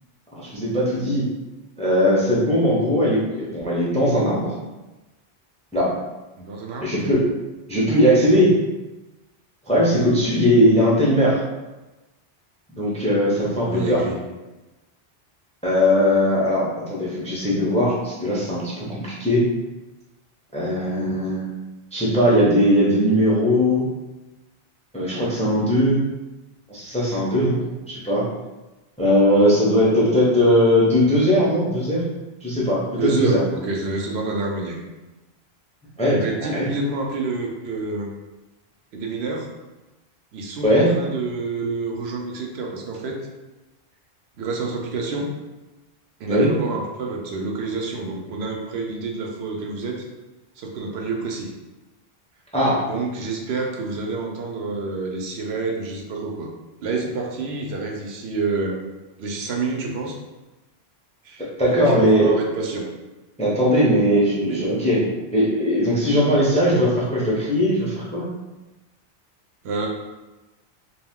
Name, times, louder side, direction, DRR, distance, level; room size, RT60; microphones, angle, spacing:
voice 1, 0.3-1.3 1.8-4.5 5.7-6.0 6.8-7.2 7.7-8.5 9.7-11.4 12.7-14.0 15.6-19.4 20.5-21.4 21.9-23.8 24.9-26.0 26.7-28.3 29.0-32.0 32.4-33.4 36.0-36.7 40.6-40.9 46.3-46.5 52.5-52.8 61.4-62.3 63.4-65.0 65.3-68.3, equal, 10° left, -6 dB, 0.5 m, -19 dB
voice 2, 6.4-7.1 9.9-10.2 13.6-14.2 21.0-21.2 33.0-34.8 36.1-38.1 38.9-39.5 40.3-43.2 44.4-45.3 46.2-50.0 50.6-51.5 52.9-56.5 56.8-58.8 59.2-60.2 61.2-62.9 64.5-64.6 69.6-69.9, right 3 dB, 80° right, 0 dB, 0.8 m, -28 dB
2.5 x 2.2 x 3.5 m, 1.1 s
omnidirectional pair, 1.1 m